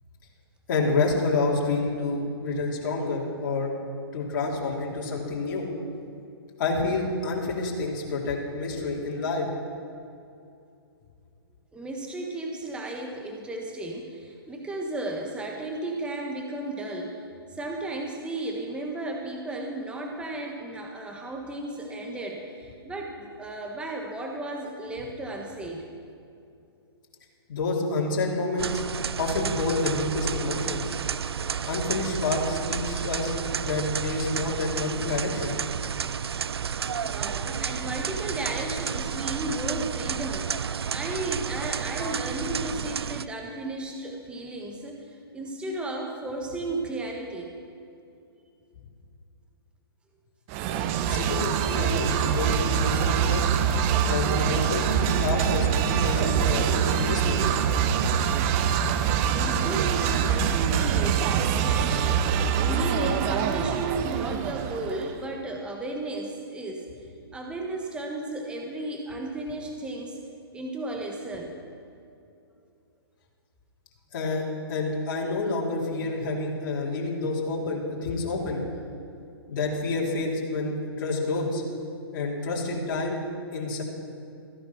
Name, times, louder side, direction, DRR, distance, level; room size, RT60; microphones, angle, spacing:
voice 1, 0.7-3.7 4.1-5.7 6.6-9.5 27.5-28.8 29.2-30.9 31.6-35.6 51.1-53.5 54.1-57.5 74.1-74.4 74.7-78.6 79.5-81.6 82.1-83.2 83.5-83.8, left 3 dB, 50° left, -2 dB, 3.3 m, -28 dB
voice 2, 11.7-25.8 37.0-47.5 59.3-66.9 67.3-70.2 70.5-71.5, right 2 dB, 5° right, 1 dB, 1.3 m, -34 dB
sound 1, 28.6-43.3, right 7 dB, 75° right, 0.4 m, -31 dB
sound 2, 50.5-65.2, right 8 dB, 30° right, 0.7 m, -24 dB
15.0 x 10.0 x 5.9 m, 2.6 s
figure-of-eight pair, 125°, 13 cm